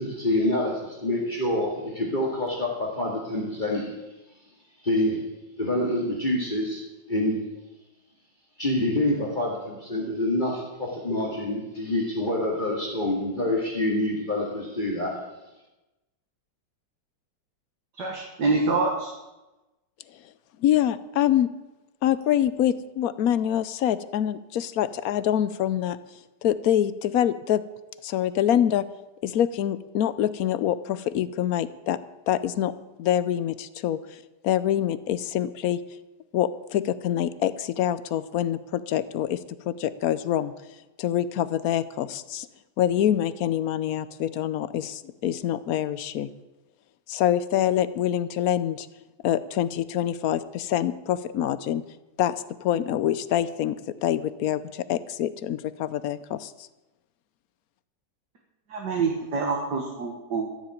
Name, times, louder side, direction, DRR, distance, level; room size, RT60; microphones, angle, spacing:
voice 1, 0.0-4.0 4.8-5.3 5.6-7.4 8.6-15.2, left 1 dB, 25° left, -1 dB, 2.2 m, -27 dB
voice 2, 18.0-19.1 58.7-60.5, right 3 dB, 65° right, 0 dB, 2.2 m, -26 dB
voice 3, 20.6-21.5 22.0-26.0 26.4-27.6 28.0-28.8 29.2-32.0 32.3-32.7 33.0-35.8 36.3-40.5 41.0-42.5 42.8-46.3 47.1-48.9 49.2-51.8 52.2-52.3 52.6-56.7, left 11 dB, 65° left, 15 dB, 1.0 m, -25 dB
13.5 x 7.4 x 9.1 m, 1.0 s
omnidirectional pair, 2.0 m